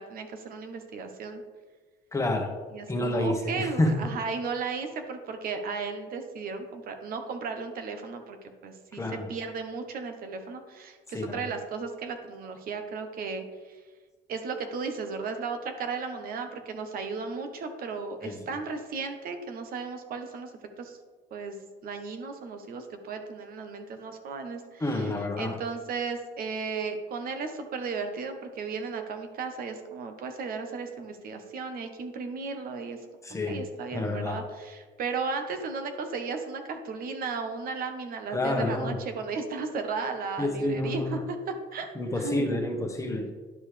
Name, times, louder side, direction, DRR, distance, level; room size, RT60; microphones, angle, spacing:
voice 1, 0.0-1.4 2.7-13.8 14.3-20.5 20.8-21.0 21.3-33.0 33.5-42.6, right 4 dB, 60° right, 6 dB, 1.0 m, -35 dB
voice 2, 2.1-2.5 2.9-3.9 8.9-9.2 11.1-11.4 18.2-18.4 24.8-25.5 33.2-33.6 33.9-34.4 38.3-38.9 40.4-41.2 41.9-43.3, left 1 dB, 20° left, 3 dB, 1.2 m, -29 dB
10.5 x 5.4 x 3.3 m, 1.4 s
cardioid pair, 110°, 17 cm